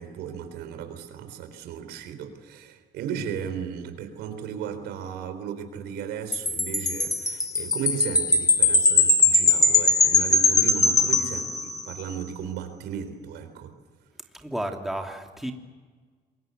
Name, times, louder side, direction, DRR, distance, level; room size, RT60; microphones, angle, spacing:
voice 1, 0.0-13.7, right 8 dB, 85° right, 8 dB, 4.1 m, -35 dB
Wind chime, 6.3-12.0, left 3 dB, 20° left, 1.9 m, -21 dB
voice 2, 14.3-15.5, right 1 dB, ahead, 2 dB, 2.8 m, -32 dB
27.0 x 22.5 x 8.0 m, 1.5 s
cardioid pair, 110°, 17 cm